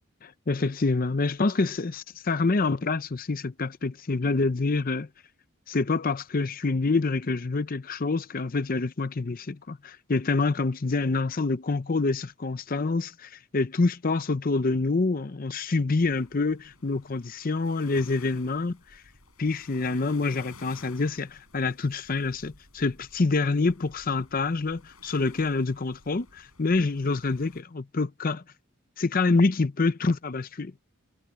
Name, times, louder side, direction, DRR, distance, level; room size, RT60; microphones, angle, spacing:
voice 1, 0.2-5.1 5.7-19.0 19.4-28.4 29.0-30.7, left 3 dB, 40° left, 0.6 m, -26 dB
sound 1, 16.0-27.6, left 3 dB, 90° left, 7.7 m, -54 dB
head